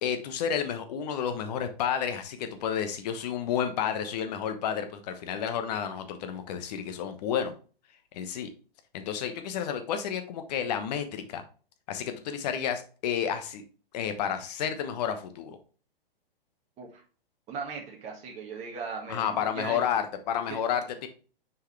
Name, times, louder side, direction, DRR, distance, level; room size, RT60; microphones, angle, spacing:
voice 1, 0.0-7.5 8.1-8.5 8.9-11.4 11.9-13.6 13.9-15.6 19.1-21.1, left 8 dB, 45° left, 7 dB, 1.1 m, -31 dB
voice 2, 17.5-19.8 20.5-20.6, right 5 dB, 25° right, -1 dB, 1.5 m, -38 dB
6.4 x 4.8 x 3.2 m, 0.38 s
hypercardioid pair, 125°, 30 cm